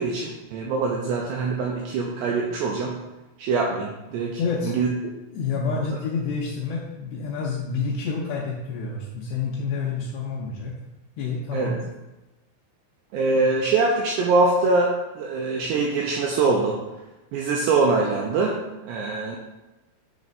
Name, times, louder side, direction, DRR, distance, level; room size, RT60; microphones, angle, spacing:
voice 1, 0.0-3.0 3.4-4.4 4.7-4.9 11.5-11.7 13.1-16.8 17.3-19.4, right 3 dB, 85° right, -1 dB, 2.4 m, -23 dB
voice 2, 4.4-4.8 5.3-10.7 11.2-11.8, left 5 dB, 85° left, -2 dB, 2.5 m, -28 dB
8.3 x 3.2 x 5.3 m, 1.0 s
omnidirectional pair, 5.6 m